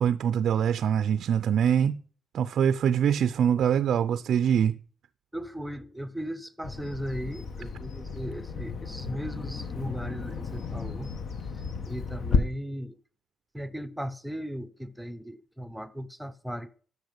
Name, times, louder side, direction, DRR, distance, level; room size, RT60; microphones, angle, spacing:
voice 1, 0.0-2.0 2.3-4.8, right 8 dB, 65° right, 0.4 m, -24 dB
voice 2, 5.3-11.1 11.5-13.0 13.5-16.7, equal, 5° right, 0.7 m, -37 dB
Bird vocalization bird call bird song, 6.6-12.4, left 5 dB, 60° left, 1.1 m, -33 dB
13.0 x 6.2 x 5.2 m
cardioid pair, 90°, 0 cm